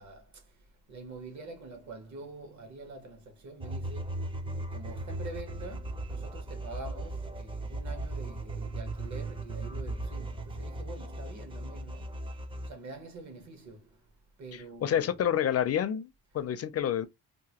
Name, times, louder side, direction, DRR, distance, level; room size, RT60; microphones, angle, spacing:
voice 1, 0.0-4.4 4.7-14.1 14.4-15.3, right 2 dB, 45° right, 1.2 m, -46 dB
sound 1, 3.6-12.7, right 2 dB, 15° right, 0.5 m, -37 dB
voice 2, 14.5-16.1 16.3-17.1, left 9 dB, 40° left, 0.4 m, -28 dB
2.9 x 2.1 x 2.8 m
cardioid pair, 115°, 40 cm